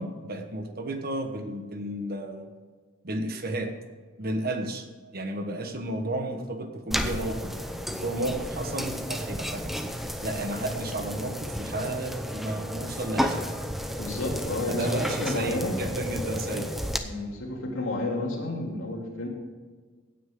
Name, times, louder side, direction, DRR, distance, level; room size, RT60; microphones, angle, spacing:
voice 1, 0.0-2.5 3.0-3.7 4.2-4.9 5.1-7.6 7.9-9.7 10.2-13.5 14.7-16.7, right 1 dB, 50° right, 6 dB, 1.3 m, -32 dB
sound 1, 6.9-17.0, equal, ahead, 0.7 m, -32 dB
voice 2, 14.0-15.8 17.0-19.3, left 2 dB, 80° left, -1 dB, 3.0 m, -31 dB
17.0 x 9.3 x 3.8 m, 1.5 s
head